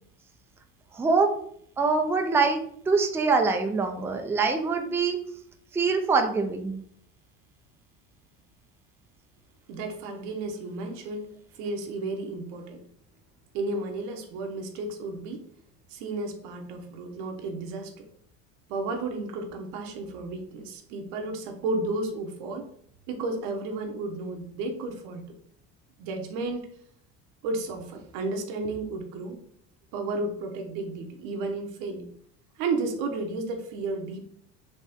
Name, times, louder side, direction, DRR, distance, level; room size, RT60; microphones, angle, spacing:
voice 1, 0.9-1.3 1.8-5.2 5.7-6.8, right 4 dB, 10° right, 4 dB, 0.4 m, -24 dB
voice 2, 9.7-11.3 11.5-12.8 13.5-15.4 15.9-18.1 18.7-22.7 23.1-25.2 26.0-26.7 27.4-29.4 29.9-32.1 32.6-34.3, right 3 dB, 80° right, 3 dB, 1.0 m, -32 dB
4.2 x 3.0 x 3.5 m, 0.65 s
cardioid pair, 120°, 32 cm